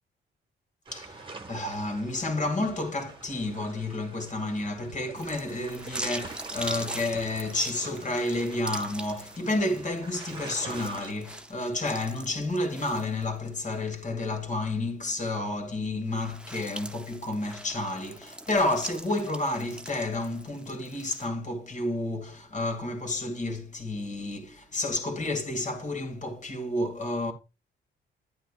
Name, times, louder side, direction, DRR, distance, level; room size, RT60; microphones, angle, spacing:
voice 1, 0.9-27.3, left 2 dB, 40° left, 2.2 m, -30 dB
sound 1, 0.9-11.1, right 3 dB, 25° right, 1.3 m, -45 dB
sound 2, 5.1-13.7 14.2-14.3 16.0-21.3, right 1 dB, 5° right, 0.6 m, -42 dB
10.5 x 9.0 x 2.4 m
cardioid pair, 90°, 20 cm